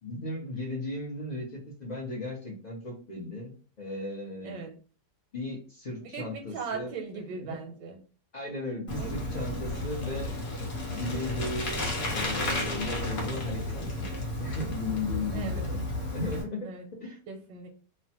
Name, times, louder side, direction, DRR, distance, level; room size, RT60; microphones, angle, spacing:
voice 1, 0.0-3.5 3.8-4.6 5.3-6.9 7.4-7.6 8.3-10.3 10.9-11.8 12.1-13.7 14.0-14.1 14.4-15.8 16.1-16.7 17.0-17.1, left 2 dB, 85° left, -4 dB, 0.3 m, -36 dB
voice 2, 4.4-4.8 6.0-8.0 8.9-9.1 15.3-15.7 16.6-16.9 17.3-17.7, right 4 dB, 80° right, 2 dB, 1.3 m, -39 dB
Bicycle, 8.9-16.4, left 2 dB, 45° left, 1.0 m, -33 dB
3.1 x 2.1 x 2.8 m, 0.39 s
omnidirectional pair, 1.9 m